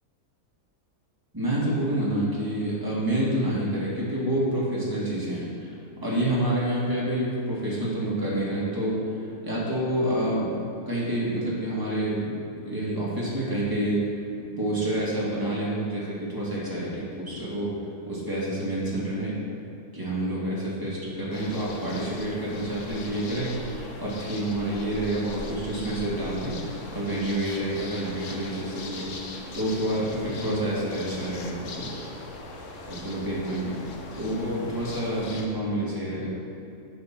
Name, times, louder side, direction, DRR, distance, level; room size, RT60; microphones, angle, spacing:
voice 1, 1.3-12.4 12.6-14.0 14.6-17.8 18.1-19.4 19.9-31.9 32.9-33.9 34.2-36.3, right 1 dB, 15° right, -7 dB, 2.0 m, -28 dB
sound 1, 21.3-35.5, left 2 dB, 60° left, 1.1 m, -40 dB
8.0 x 5.6 x 5.9 m, 2.7 s
omnidirectional pair, 1.6 m